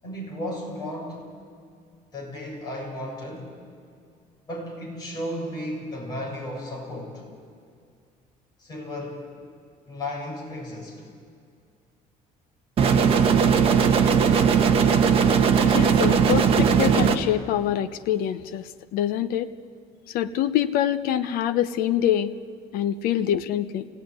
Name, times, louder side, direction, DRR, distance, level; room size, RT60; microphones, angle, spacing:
voice 1, 0.0-1.3 2.1-3.5 4.5-7.2 8.6-9.2 9.9-11.1, left 1 dB, 25° left, -3 dB, 7.5 m, -34 dB
sound 1, 12.8-17.2, right 6 dB, 35° right, 1.5 m, -19 dB
voice 2, 15.6-19.5 20.1-22.3 22.7-23.9, left 11 dB, 70° left, 9 dB, 0.9 m, -25 dB
28.5 x 18.0 x 9.7 m, 2.3 s
cardioid pair, 170°, 16 cm